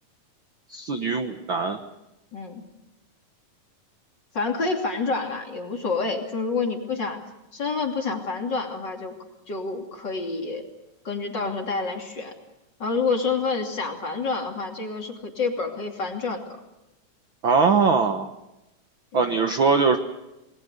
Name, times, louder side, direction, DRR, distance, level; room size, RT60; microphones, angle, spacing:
voice 1, 0.7-1.8 17.4-18.3 19.1-20.0, right 5 dB, 55° right, 6 dB, 1.4 m, -21 dB
voice 2, 2.3-2.6 4.3-7.2 7.5-9.1 9.5-10.6 11.0-12.3 12.8-16.4 19.1-19.3, left 4 dB, 35° left, 2 dB, 3.1 m, -28 dB
28.5 x 20.5 x 6.7 m, 0.93 s
omnidirectional pair, 3.7 m